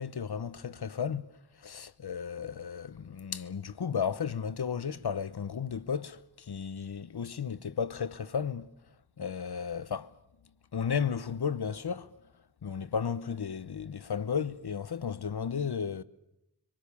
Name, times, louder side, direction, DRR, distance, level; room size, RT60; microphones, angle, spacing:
voice 1, 0.0-1.3 1.6-8.7 9.2-10.1 10.7-12.1 12.6-16.0, left 7 dB, 80° left, 1.0 m, -34 dB
26.0 x 24.5 x 7.0 m
wide cardioid pair, 45°, 38 cm